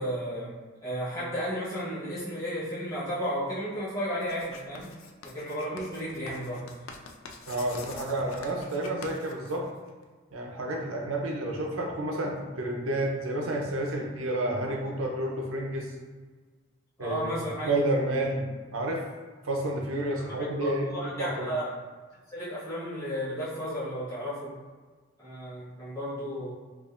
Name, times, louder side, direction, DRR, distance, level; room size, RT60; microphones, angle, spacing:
voice 1, 0.0-4.9 5.2-6.7 17.0-17.7 20.2-21.7 22.3-24.5 25.2-26.5, equal, 15° left, -11 dB, 1.2 m, -33 dB
Writing, 4.2-10.0, left 4 dB, 80° left, 0.4 m, -46 dB
voice 2, 7.5-9.6 10.3-15.9 17.0-19.0 19.4-20.9 21.2-21.5, right 1 dB, 90° right, 0 dB, 0.7 m, -30 dB
4.6 x 2.5 x 2.5 m, 1.4 s
head